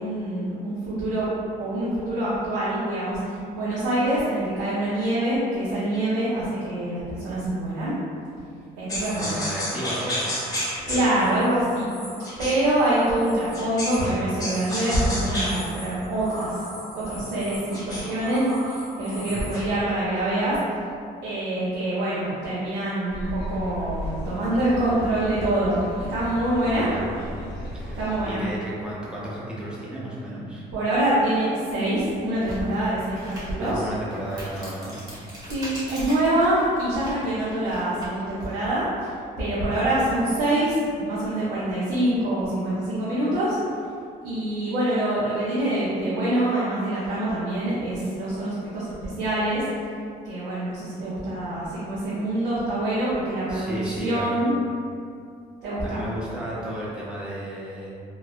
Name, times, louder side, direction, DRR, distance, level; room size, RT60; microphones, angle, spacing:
voice 1, 0.0-1.3 1.6-7.9 8.8-9.4 10.9-11.9 12.4-16.6 16.9-20.6 21.2-26.9 28.0-28.4 30.7-33.9 35.5-43.6 44.2-49.6 50.2-54.5 55.6-56.0, right 1 dB, 90° right, -10 dB, 0.6 m, -25 dB
sound 1, 8.9-14.1 14.4-19.7, equal, 20° left, 0.9 m, -33 dB
voice 2, 9.2-10.3 19.3-19.5 26.6-27.1 27.7-30.7 33.6-35.0 53.5-54.3 55.8-57.9, right 1 dB, 5° right, -7 dB, 0.6 m, -33 dB
sound 2, 23.1-28.3, left 1 dB, 80° left, 0.5 m, -35 dB
sound 3, 31.3-31.4 31.9-38.5, equal, 20° right, 1.0 m, -41 dB
3.0 x 2.1 x 2.3 m, 2.4 s
cardioid pair, 110°, 17 cm